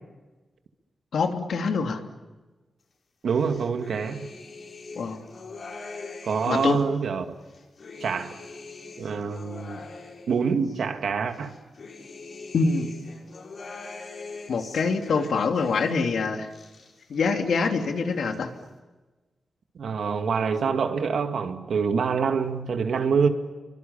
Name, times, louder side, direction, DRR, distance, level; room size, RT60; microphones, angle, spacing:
voice 1, 1.1-2.0 4.9-5.2 6.5-6.8 12.5-12.9 14.5-16.5 17.1-18.5, left 4 dB, 75° left, 3.0 m, -25 dB
voice 2, 3.2-4.3 6.2-7.3 8.0-8.3 9.0-9.9 10.3-11.5 19.7-23.3, right 6 dB, 75° right, 2.3 m, -26 dB
sound 1, 3.3-6.9 7.4-10.8 11.3-16.1 16.4-17.3 17.6-18.4, left 3 dB, 55° left, 6.0 m, -42 dB
29.5 x 24.0 x 7.2 m
wide cardioid pair, 130°, 0 cm